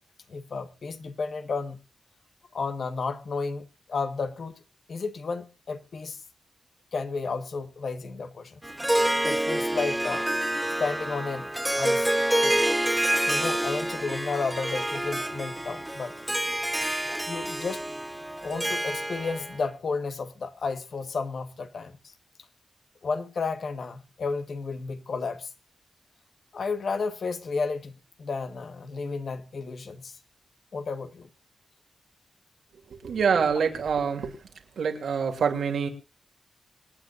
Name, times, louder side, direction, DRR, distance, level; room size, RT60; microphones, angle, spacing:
voice 1, 0.3-1.8 2.5-4.6 4.9-6.2 6.9-8.6 9.2-10.3 10.8-12.1 12.4-12.6 13.3-16.1 17.3-17.8 18.4-22.1 23.0-25.5 26.5-30.1 30.7-31.3, left 4 dB, 60° left, 1.5 m, -32 dB
Harp, 8.6-19.6, right 1 dB, 5° right, 0.7 m, -27 dB
voice 2, 33.0-34.3 34.8-35.9, right 6 dB, 85° right, 3.1 m, -25 dB
26.5 x 9.6 x 2.6 m
wide cardioid pair, 115°, 0 cm